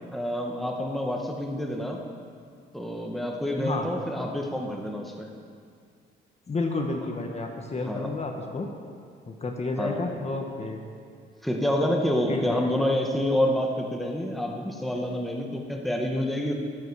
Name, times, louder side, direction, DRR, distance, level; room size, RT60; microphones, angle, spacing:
voice 1, 0.1-2.0 2.7-5.3 7.8-8.1 9.8-10.0 11.4-16.5, left 1 dB, ahead, 1 dB, 1.7 m, -28 dB
voice 2, 3.6-3.9 6.5-8.7 9.3-10.8 12.3-12.6, left 3 dB, 35° left, 3 dB, 1.4 m, -31 dB
24.0 x 8.1 x 4.9 m, 2.2 s
cardioid pair, 90°, 20 cm